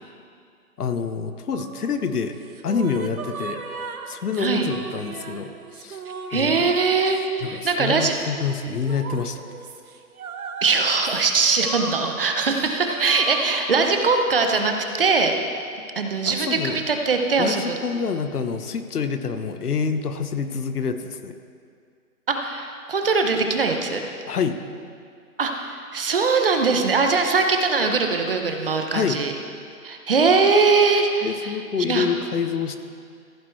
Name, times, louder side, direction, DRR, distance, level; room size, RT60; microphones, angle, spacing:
voice 1, 0.8-2.3 2.6-3.6 4.1-6.0 6.3-6.6 7.4-9.4 16.2-16.8 17.4-21.3 24.3-24.6 28.9-29.2 31.2-32.8, left 5 dB, 85° left, 9 dB, 1.0 m, -27 dB
sound 1, 1.5-14.2, right 5 dB, 70° right, 1.0 m, -37 dB
voice 2, 4.4-4.7 6.3-8.2 10.6-15.3 16.0-17.7 22.3-24.0 25.4-29.3 29.8-31.6 31.9-32.1, right 4 dB, 40° right, 4 dB, 0.8 m, -21 dB
14.5 x 9.2 x 3.2 m, 2.3 s
hypercardioid pair, 165°, 45 cm